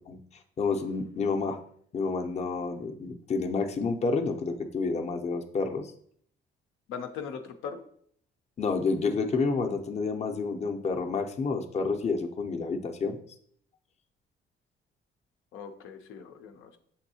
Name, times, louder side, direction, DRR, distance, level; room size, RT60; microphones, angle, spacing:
voice 1, 0.6-1.6 1.9-5.9 8.6-13.2, left 4 dB, 35° left, 4 dB, 0.5 m, -29 dB
voice 2, 6.9-7.8 15.5-16.7, left 6 dB, 85° left, 5 dB, 0.5 m, -39 dB
7.1 x 2.7 x 2.7 m, 0.63 s
cardioid pair, 90°, 20 cm